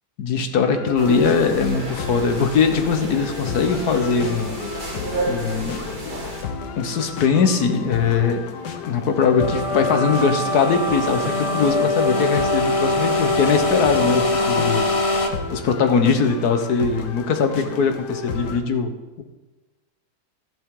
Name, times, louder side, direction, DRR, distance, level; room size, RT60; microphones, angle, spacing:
voice 1, 0.2-4.5 5.3-5.8 6.8-8.4 8.9-14.8 15.5-18.9 19.2-19.3, left 5 dB, 70° left, 7 dB, 1.5 m, -21 dB
sound 1, 0.7-18.6, left 5 dB, 90° left, 1.6 m, -33 dB
sound 2, 1.0-6.4, right 1 dB, 30° right, 1.8 m, -31 dB
sound 3, 9.4-15.3, left 2 dB, 35° left, 0.5 m, -22 dB
13.0 x 11.0 x 3.8 m, 1.2 s
omnidirectional pair, 1.7 m